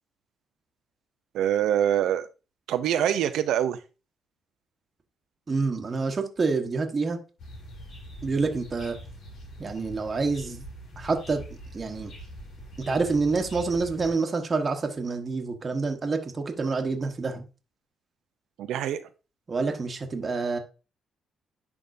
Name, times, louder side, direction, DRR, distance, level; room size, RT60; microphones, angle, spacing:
voice 1, 1.3-2.3 2.7-3.8 18.6-19.0, right 10 dB, 80° right, 12 dB, 0.6 m, -24 dB
voice 2, 5.5-7.2 8.2-9.0 9.6-10.6 11.0-11.4 11.7-12.1 12.8-17.4 19.5-20.6, right 4 dB, 35° right, 4 dB, 1.2 m, -27 dB
sound 1, 7.4-14.1, equal, 70° left, 2.4 m, -43 dB
10.5 x 3.6 x 2.6 m, 0.32 s
cardioid pair, 90°, 0 cm